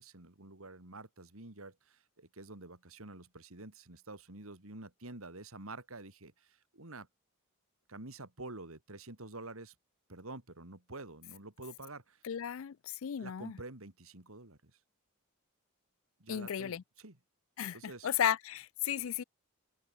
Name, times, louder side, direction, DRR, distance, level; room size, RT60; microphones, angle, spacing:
voice 1, 0.0-7.1 7.9-9.7 10.1-12.2 13.2-14.7 16.2-17.2 17.7-18.1, right 2 dB, 75° right, 3.0 m, -48 dB
voice 2, 12.2-12.8 13.0-13.5 16.3-16.8 17.6-19.2, left 9 dB, 70° left, 0.4 m, -34 dB
open air
head